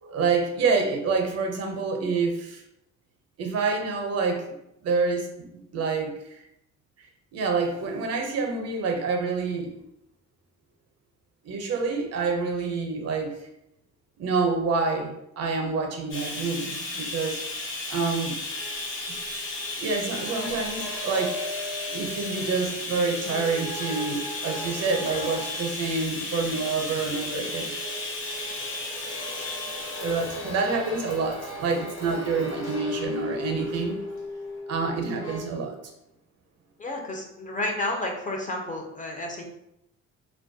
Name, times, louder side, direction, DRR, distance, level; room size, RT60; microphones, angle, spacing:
voice 1, 0.0-2.6 3.4-4.4 4.8-5.5 5.7-6.4 7.3-9.7 11.4-13.3 14.2-17.4 17.9-18.4 19.8-21.3 21.9-27.7 30.0-34.0 34.7-35.8, right 4 dB, 55° right, 3 dB, 0.5 m, -27 dB
Bathtub (filling or washing), 16.1-32.8 33.7-33.8 34.2-34.3, left 2 dB, 45° left, 0.8 m, -35 dB
sound 1, 18.5-35.4, left 1 dB, 65° left, 1.0 m, -38 dB
voice 2, 36.8-39.4, left 1 dB, 25° left, 0 dB, 0.5 m, -31 dB
2.2 x 2.2 x 2.5 m, 0.84 s
cardioid pair, 90°, 30 cm